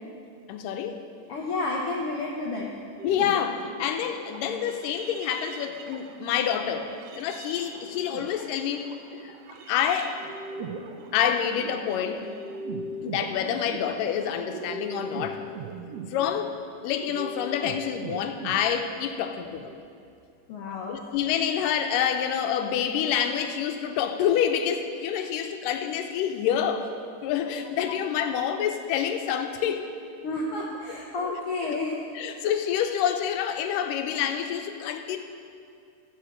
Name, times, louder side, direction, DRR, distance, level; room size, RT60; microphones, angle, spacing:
voice 1, 0.5-1.1 3.0-8.9 9.2-9.3 9.7-10.2 11.1-12.2 13.0-15.4 16.1-16.6 16.8-19.7 20.9-26.9 27.2-29.9 31.2-31.4 31.6-31.8 32.2-35.2, left 9 dB, 90° left, 7 dB, 2.3 m, -27 dB
voice 2, 1.3-2.7 13.4-13.5 20.5-21.0 27.6-27.7 30.2-32.0, left 2 dB, 70° left, -3 dB, 1.3 m, -31 dB
sound 1, 3.0-19.1 19.4-19.8, right 3 dB, 85° right, 1.4 m, -40 dB
15.0 x 5.6 x 5.9 m, 2.3 s
omnidirectional pair, 3.7 m